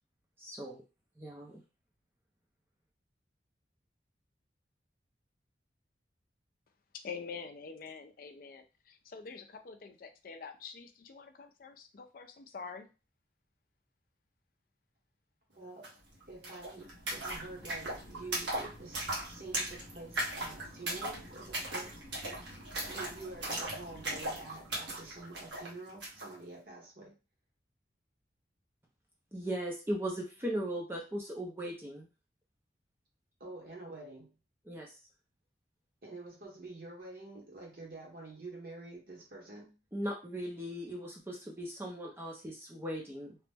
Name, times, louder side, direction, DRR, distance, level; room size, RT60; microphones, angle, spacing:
voice 1, 0.4-0.8 1.2-1.6 29.3-32.1 34.7-35.0 39.9-43.4, right 1 dB, 15° right, -1 dB, 0.4 m, -38 dB
voice 2, 7.0-12.9, left 5 dB, 50° left, 7 dB, 0.4 m, -46 dB
voice 3, 15.5-15.9 16.3-22.0 22.9-27.1 33.4-34.3 36.0-39.8, right 2 dB, 55° right, -2 dB, 1.0 m, -47 dB
sound 1, 15.8-15.9 16.1-26.3, right 1 dB, 85° right, 1.2 m, -39 dB
2.9 x 2.1 x 3.3 m, 0.31 s
head